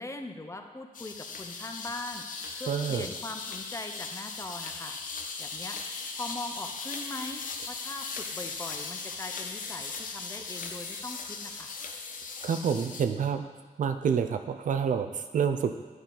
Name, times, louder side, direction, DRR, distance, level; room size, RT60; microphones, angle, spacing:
voice 1, 0.0-5.0 5.4-11.7, left 2 dB, 20° left, 5 dB, 0.6 m, -41 dB
sound 1, 0.9-13.0, left 4 dB, 80° left, 0.6 m, -38 dB
voice 2, 2.7-3.1 12.4-13.5 13.8-15.8, right 7 dB, 75° right, 8 dB, 0.5 m, -28 dB
9.2 x 4.1 x 3.8 m, 1.4 s
cardioid pair, 85°, 14 cm